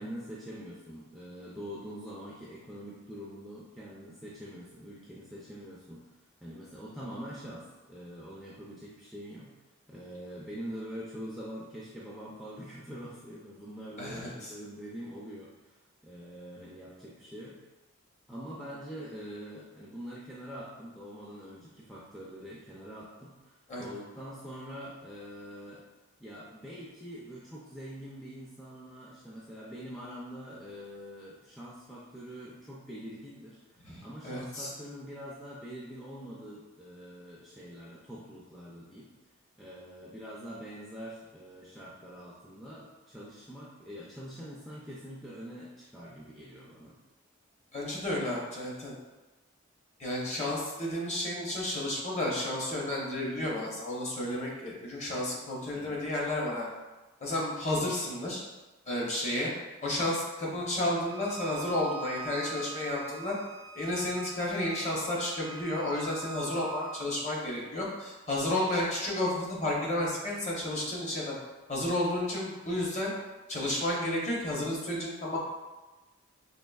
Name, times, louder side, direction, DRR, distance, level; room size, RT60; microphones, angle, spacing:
voice 1, 0.0-6.0 6.4-9.5 9.9-15.8 16.0-17.6 18.3-25.8 26.2-39.1 39.6-47.0 55.7-56.0, equal, ahead, -7 dB, 0.4 m, -44 dB
voice 2, 14.0-14.5 23.7-23.9 33.8-34.7 47.7-48.9 50.0-56.7 57.2-58.4 58.9-59.5 59.8-63.4 63.7-71.3 71.7-73.1 73.5-75.4, left 1 dB, 35° left, -4 dB, 0.7 m, -32 dB
Bowed string instrument, 61.0-67.1, right 5 dB, 90° right, 0.6 m, -44 dB
4.3 x 2.8 x 2.3 m, 1.1 s
head